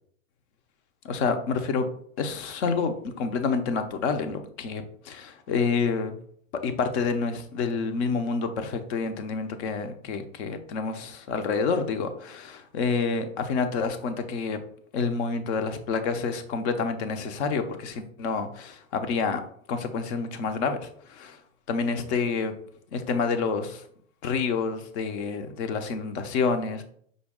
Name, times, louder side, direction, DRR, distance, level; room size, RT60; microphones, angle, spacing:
voice 1, 1.0-1.9 2.2-6.1 6.6-14.6 14.9-19.4 19.7-21.4 21.7-22.5 22.9-23.8 24.2-26.8, left 5 dB, 55° left, 9 dB, 0.7 m, -28 dB
5.1 x 2.2 x 3.6 m, 0.63 s
hypercardioid pair, 135°, 41 cm